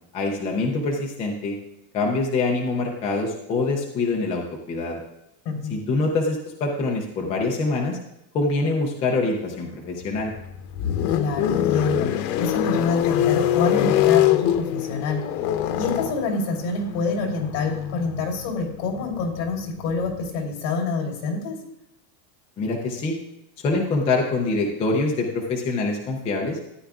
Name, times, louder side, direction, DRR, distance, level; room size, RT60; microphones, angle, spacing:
voice 1, 0.1-1.6 1.9-5.0 5.7-8.0 8.3-10.3 22.6-23.1 23.6-26.6, left 3 dB, 15° left, 0 dB, 0.3 m, -25 dB
voice 2, 5.4-5.8 11.1-15.2 15.7-21.6, left 4 dB, 50° left, 1 dB, 3.4 m, -27 dB
sound 1, 10.0-20.3, left 11 dB, 85° left, 0.9 m, -24 dB
13.5 x 9.9 x 2.3 m, 0.87 s
cardioid pair, 175°, 48 cm